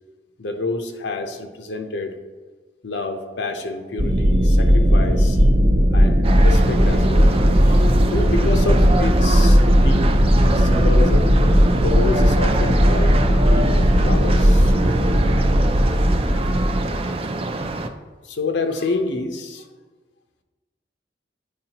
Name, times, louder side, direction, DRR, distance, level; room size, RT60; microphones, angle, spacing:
voice 1, 0.4-2.2 2.8-5.5 5.9-7.8 8.1-10.1 10.5-11.3 11.8-15.1 16.2-16.6 17.1-17.2 18.2-19.7, left 3 dB, 80° left, 5 dB, 0.8 m, -28 dB
sound 1, 4.0-17.0, equal, 60° right, 0.8 m, -16 dB
sound 2, 6.2-17.9, right 2 dB, 30° right, 0.4 m, -26 dB
9.5 x 4.7 x 2.9 m, 1.3 s
head